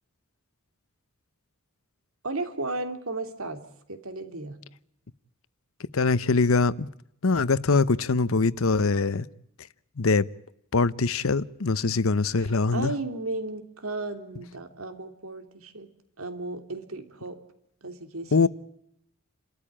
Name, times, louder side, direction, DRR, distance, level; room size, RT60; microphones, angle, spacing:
voice 1, 2.2-3.6 3.9-4.6 12.7-15.9 16.2-17.4 17.8-18.5, right 2 dB, 85° right, 3.1 m, -34 dB
voice 2, 5.9-6.9 7.2-9.3 10.0-10.3 10.7-12.9 18.3-18.5, left 4 dB, 75° left, 0.8 m, -23 dB
29.5 x 13.5 x 9.9 m
head